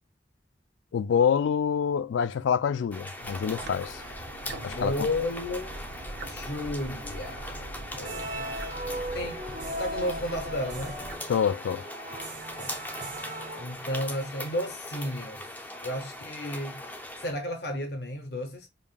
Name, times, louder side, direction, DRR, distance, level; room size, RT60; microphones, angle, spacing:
voice 1, 0.9-4.0 4.6-4.9 11.3-11.8, left 7 dB, 85° left, 0.3 m, -26 dB
sound 1, 2.9-17.3, left 1 dB, 10° left, 0.6 m, -41 dB
sound 2, 3.2-11.2, right 2 dB, 70° right, 0.7 m, -42 dB
voice 2, 4.1-5.8 6.2-9.4 9.8-11.0 12.6-12.8 13.6-15.5 15.8-16.8 17.2-18.7, left 1 dB, 60° left, 0.8 m, -33 dB
sound 3, 7.9-14.2, right 1 dB, 45° right, 1.6 m, -38 dB
5.3 x 2.4 x 2.3 m
head